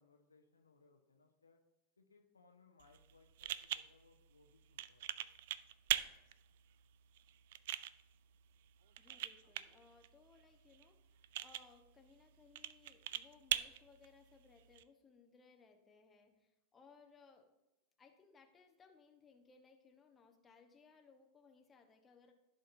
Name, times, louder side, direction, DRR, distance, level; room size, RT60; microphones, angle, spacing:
voice 1, 0.0-1.6 2.0-5.3, left 4 dB, 75° left, 3 dB, 1.0 m, -69 dB
sound 1, 2.8-14.8, right 13 dB, 55° right, 0.3 m, -44 dB
voice 2, 9.0-11.0 11.4-17.5 18.0-22.3, left 5 dB, 20° left, 4 dB, 1.0 m, -65 dB
15.0 x 5.1 x 2.7 m, 0.97 s
figure-of-eight pair, 90°, 0 cm